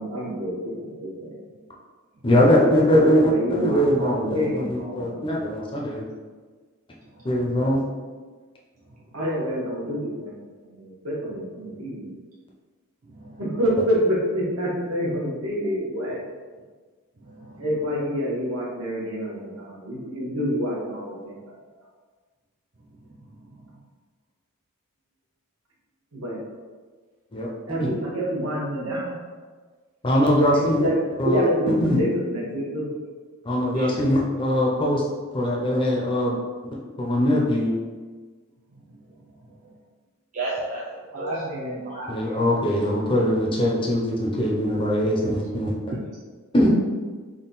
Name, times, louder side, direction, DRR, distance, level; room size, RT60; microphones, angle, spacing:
voice 1, 0.0-1.3 2.5-5.4 9.1-10.3 10.7-12.1 13.4-16.2 17.6-21.4 26.1-26.4 27.7-29.2 30.5-32.9 41.1-41.8, equal, 80° right, -4 dB, 1.1 m, -27 dB
voice 2, 2.2-6.0 7.2-7.8 27.3-27.5 27.8-27.9 30.0-30.9 31.2-31.4 31.8-32.0 33.4-35.0 35.3-36.3 37.0-37.7 42.1-45.7 46.5-46.7, equal, 25° left, -3 dB, 0.5 m, -21 dB
voice 3, 13.0-13.4 17.2-17.6 23.0-23.7 33.7-34.0 38.9-39.0 39.6-39.7 40.3-41.3 41.8-42.4 45.5-46.0, right 2 dB, 35° right, -6 dB, 0.5 m, -36 dB
3.6 x 2.3 x 3.9 m, 1.4 s
head